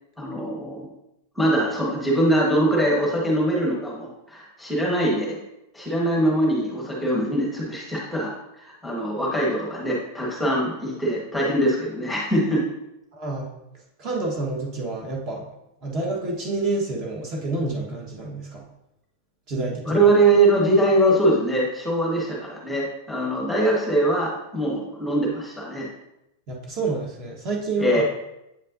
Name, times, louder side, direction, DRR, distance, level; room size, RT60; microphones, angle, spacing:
voice 1, 0.2-0.9 1.3-5.4 5.7-12.6 19.8-25.9 27.8-28.0, right 1 dB, ahead, -4 dB, 1.3 m, -22 dB
voice 2, 13.1-13.5 14.0-15.5 15.8-18.6 19.5-20.1 26.5-28.0, right 3 dB, 30° right, -1 dB, 1.2 m, -28 dB
8.2 x 5.3 x 2.6 m, 0.85 s
supercardioid pair, 170°, 0 cm